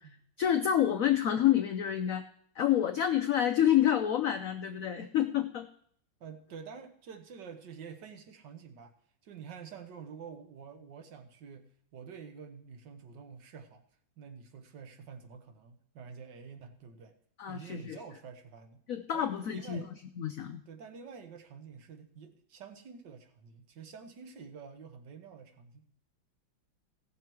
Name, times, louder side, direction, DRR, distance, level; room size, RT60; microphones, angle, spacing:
voice 1, 0.4-2.3 2.6-5.7 17.4-18.0 18.9-19.9 20.2-20.6, left 10 dB, 80° left, 7 dB, 0.7 m, -28 dB
voice 2, 6.2-8.9 9.2-13.8 14.2-17.2 17.5-18.8 19.1-19.9 20.7-25.9, right 6 dB, 65° right, 7 dB, 1.7 m, -48 dB
16.5 x 6.6 x 4.6 m, 0.64 s
omnidirectional pair, 2.2 m